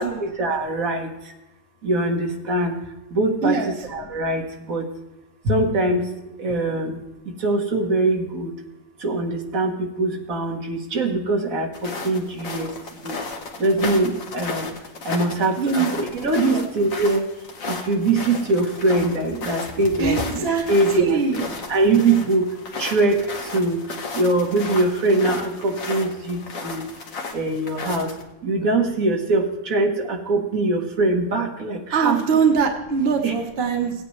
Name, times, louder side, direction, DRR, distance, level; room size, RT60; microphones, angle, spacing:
voice 1, 0.0-1.3 1.8-2.8 3.1-4.9 5.4-6.1 6.4-7.0 7.4-8.5 9.0-12.7 13.0-13.2 13.6-14.7 15.0-17.2 17.7-21.2 21.7-22.5 22.8-23.8 24.1-26.9 27.3-28.1 28.4-32.2 33.2-33.4, right 2 dB, 75° right, 2 dB, 1.8 m, -22 dB
sound 1, 11.7-28.2, left 4 dB, 70° left, 1.7 m, -34 dB
voice 2, 15.6-15.9 16.4-16.6 20.0-20.6 21.0-21.4 31.9-33.9, right 5 dB, 50° right, 3 dB, 1.4 m, -22 dB
17.5 x 9.2 x 3.2 m, 0.97 s
omnidirectional pair, 1.5 m